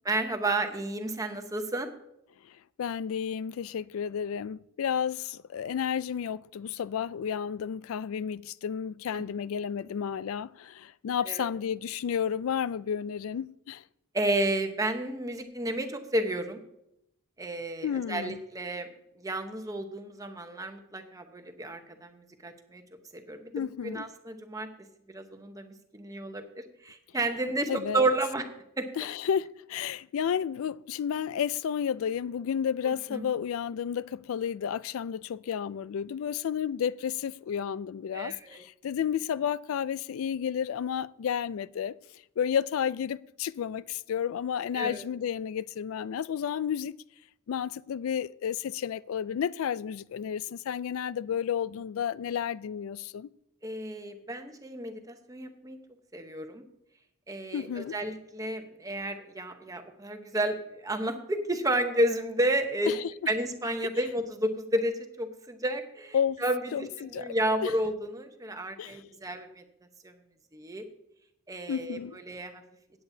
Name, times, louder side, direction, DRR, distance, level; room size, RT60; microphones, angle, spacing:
voice 1, 0.0-1.9 9.1-9.2 11.3-11.5 14.1-16.6 17.4-18.9 19.2-22.8 23.1-23.5 23.8-24.7 25.1-28.5 28.8-28.9 32.9-33.2 38.1-38.6 44.7-45.1 53.6-55.8 56.1-56.6 57.3-62.9 63.3-69.6 70.0-70.1 70.5-70.8 71.5-72.6, right 1 dB, 15° right, 0.9 m, -31 dB
voice 2, 2.8-13.8 17.8-18.4 23.5-24.0 27.7-28.1 29.0-41.9 42.4-46.9 47.5-53.3 57.5-57.9 62.9-63.1 66.1-66.4 66.7-67.3 67.6-67.7 68.8-69.0 71.7-72.2, left 8 dB, 70° left, 0.3 m, -31 dB
16.5 x 8.6 x 2.7 m
head